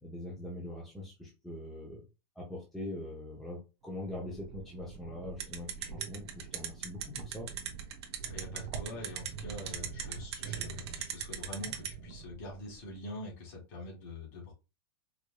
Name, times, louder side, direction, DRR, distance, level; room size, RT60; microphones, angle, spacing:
voice 1, 0.0-2.0 2.4-7.5, left 1 dB, ahead, -4 dB, 0.7 m, -42 dB
sound 1, 3.8-13.1, right 6 dB, 50° right, 1.0 m, -46 dB
sound 2, 5.4-11.9, right 10 dB, 85° right, 1.0 m, -36 dB
voice 2, 8.3-14.5, left 2 dB, 45° left, -2 dB, 2.2 m, -44 dB
4.9 x 2.6 x 2.3 m, 0.28 s
supercardioid pair, 170°, 13 cm